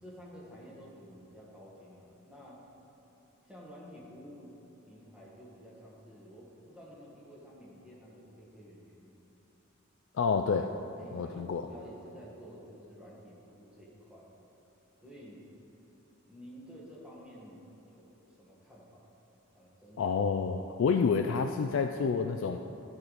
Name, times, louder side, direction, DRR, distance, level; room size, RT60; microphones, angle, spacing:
voice 1, 0.0-2.7 3.4-4.5 4.8-9.2 11.0-14.3 15.0-15.4 16.3-19.1 19.5-20.0, equal, 5° right, -6 dB, 1.5 m, -51 dB
voice 2, 10.1-10.7 11.1-11.7 20.0-22.6, left 5 dB, 65° left, 6 dB, 0.3 m, -28 dB
13.0 x 5.0 x 4.0 m, 2.9 s
head